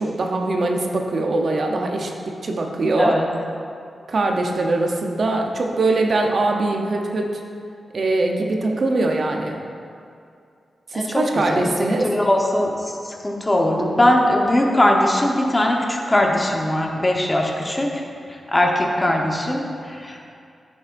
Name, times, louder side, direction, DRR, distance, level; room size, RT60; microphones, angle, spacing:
voice 1, 0.0-3.2 4.1-7.4 7.9-9.6 10.9-12.1, right 2 dB, 65° right, 2 dB, 0.8 m, -22 dB
voice 2, 12.0-12.7 13.1-18.0 18.5-20.3, left 1 dB, 25° left, 0 dB, 1.0 m, -20 dB
9.6 x 7.0 x 2.6 m, 2.4 s
cardioid pair, 65°, 0 cm